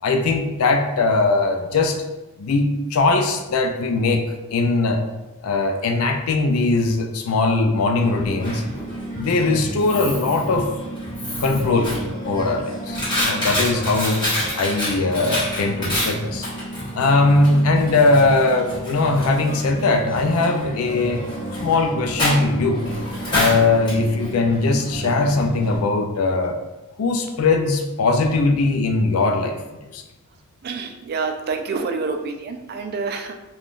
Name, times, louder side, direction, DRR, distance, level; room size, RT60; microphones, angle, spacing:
voice 1, 0.0-2.0 2.4-5.0 5.4-8.6 9.1-10.7 11.4-12.0 12.2-14.2 14.6-16.5 16.9-21.3 21.6-22.9 23.3-26.6 27.0-29.6 29.9-30.0, left 3 dB, 70° left, 5 dB, 0.4 m, -20 dB
Coin (dropping), 8.0-25.8, equal, 20° left, 1.2 m, -28 dB
voice 2, 30.6-33.3, right 4 dB, 45° right, 5 dB, 0.3 m, -27 dB
3.5 x 2.3 x 2.4 m, 1.0 s
head